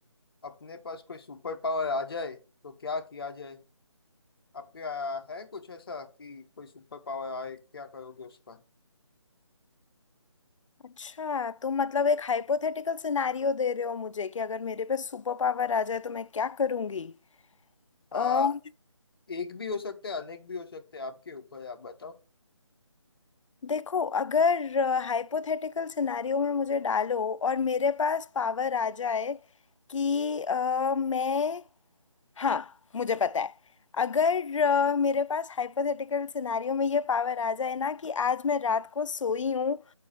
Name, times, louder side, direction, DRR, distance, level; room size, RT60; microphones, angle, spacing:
voice 1, 0.4-2.4 2.6-3.6 4.5-8.6 18.1-18.5 19.3-22.1, left 4 dB, 50° left, 0.9 m, -36 dB
voice 2, 10.8-17.1 18.1-18.6 23.6-29.4 29.9-31.6 32.4-33.5 33.9-39.8, left 5 dB, 80° left, 0.4 m, -28 dB
4.9 x 4.6 x 4.9 m
figure-of-eight pair, 165°, 16 cm